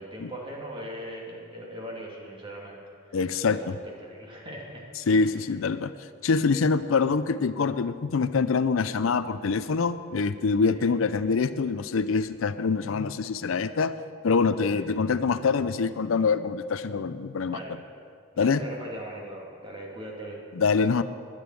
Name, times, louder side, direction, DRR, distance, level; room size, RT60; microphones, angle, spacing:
voice 1, 0.0-2.8 3.4-4.8 5.1-5.4 10.7-10.9 14.7-14.9 17.5-17.8 18.3-20.4, right 1 dB, 25° right, -2 dB, 2.6 m, -40 dB
voice 2, 3.1-3.8 5.1-5.9 6.2-14.0 14.2-17.6 18.4-18.6 20.6-21.0, left 4 dB, 70° left, 13 dB, 0.5 m, -25 dB
10.5 x 10.0 x 9.1 m, 2.2 s
head